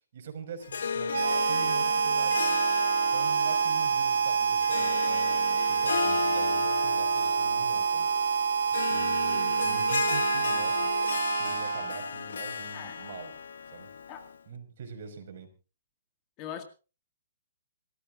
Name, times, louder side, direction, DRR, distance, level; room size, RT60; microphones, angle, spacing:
voice 1, 0.1-2.6 3.1-8.4 8.7-10.9 11.4-13.4 13.7-13.9 14.5-15.5, right 6 dB, 50° right, 5.3 m, -43 dB
Harp, 0.6-14.4, left 6 dB, 75° left, 1.0 m, -34 dB
Harmonica, 1.1-12.1, right 6 dB, 75° right, 0.6 m, -27 dB
voice 2, 12.7-13.2 14.1-14.3 16.4-16.6, left 9 dB, 25° left, 1.9 m, -42 dB
28.0 x 14.0 x 2.5 m
hypercardioid pair, 155°, 0 cm